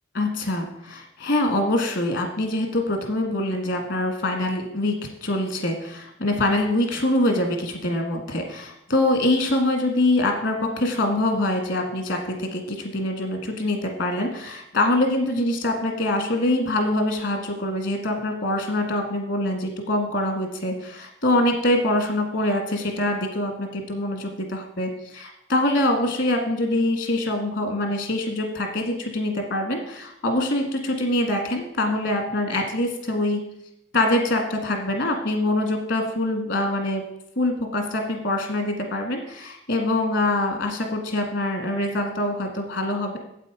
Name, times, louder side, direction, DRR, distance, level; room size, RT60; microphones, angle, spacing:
voice 1, 0.2-4.9 5.2-33.4 33.9-37.0 37.4-43.2, left 1 dB, 60° left, 4 dB, 1.8 m, -24 dB
8.2 x 8.1 x 5.0 m, 0.79 s
head